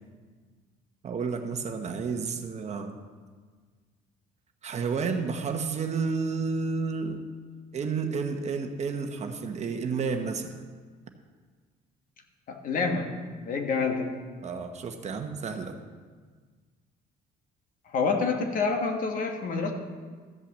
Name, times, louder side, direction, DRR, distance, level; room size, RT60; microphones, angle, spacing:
voice 1, 1.0-3.0 4.6-7.2 7.7-10.6 14.4-15.8, right 5 dB, 40° right, 6 dB, 1.0 m, -31 dB
voice 2, 12.5-13.1 13.4-14.1 17.9-19.7, left 4 dB, 55° left, 4 dB, 1.4 m, -27 dB
13.5 x 5.6 x 7.4 m, 1.5 s
cardioid pair, 110°, 17 cm